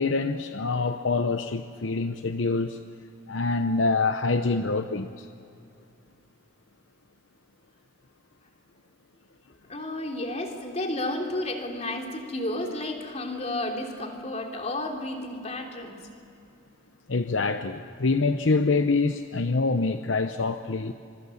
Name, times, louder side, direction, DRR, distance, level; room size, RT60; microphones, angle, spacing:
voice 1, 0.0-2.8 3.3-5.3 17.1-20.9, left 3 dB, 70° left, 8 dB, 0.8 m, -25 dB
voice 2, 9.7-16.0, left 1 dB, 35° left, 2 dB, 3.2 m, -32 dB
25.5 x 24.0 x 7.2 m, 2.6 s
head